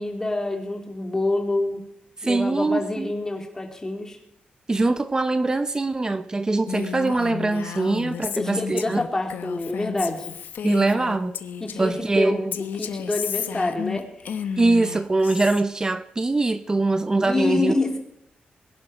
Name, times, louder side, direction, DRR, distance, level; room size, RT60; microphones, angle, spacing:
voice 1, 0.0-1.8 2.2-4.2 8.3-10.3 10.9-11.0 11.6-14.5 17.2-18.0, left 2 dB, 15° left, 2.7 m, -27 dB
voice 2, 2.2-3.1 4.7-9.0 10.6-11.4 11.8-12.5 14.6-17.7, right 2 dB, 20° right, 0.7 m, -23 dB
Female speech woman speaking, 6.7-12.0 12.5-15.6, left 8 dB, 90° left, 0.9 m, -32 dB
22.0 x 11.0 x 4.9 m
wide cardioid pair, 145°, 3 cm